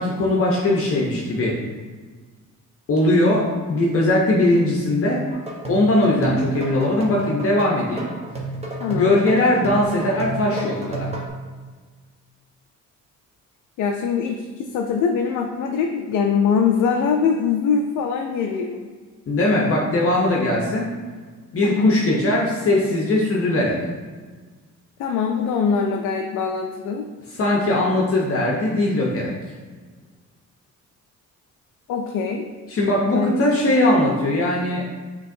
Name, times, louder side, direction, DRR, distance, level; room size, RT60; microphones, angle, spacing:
voice 1, 0.0-1.6 2.9-5.2 5.7-8.1 8.9-11.1 19.3-20.9 21.5-23.8 27.3-29.3 32.7-34.8, left 1 dB, 50° left, -2 dB, 0.7 m, -20 dB
sound 1, 5.3-11.3, right 2 dB, 20° right, 1.0 m, -32 dB
voice 2, 8.8-9.1 13.8-18.8 21.6-21.9 25.0-27.1 31.9-32.4 33.1-33.3, left 6 dB, 80° left, 2 dB, 0.5 m, -22 dB
6.3 x 3.0 x 2.6 m, 1.4 s
cardioid pair, 90°, 30 cm